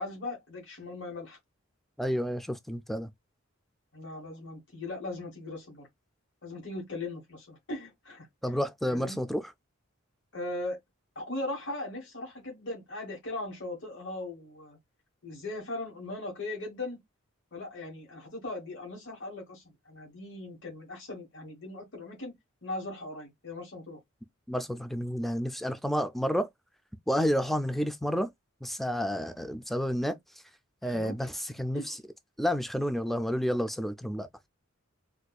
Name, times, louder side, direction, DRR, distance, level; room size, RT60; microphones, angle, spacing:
voice 1, 0.0-1.4 3.9-5.9 6.4-8.3 8.8-9.2 10.3-10.8 11.1-14.8 15.2-17.0 17.5-22.3 22.6-24.0 30.8-31.2 31.7-32.0, left 2 dB, 60° left, 1.3 m, -39 dB
voice 2, 2.0-3.1 8.4-9.4 24.5-26.5 27.1-28.3 28.6-30.2 30.8-32.0 32.4-34.3, equal, ahead, 0.3 m, -30 dB
4.1 x 2.5 x 2.3 m
head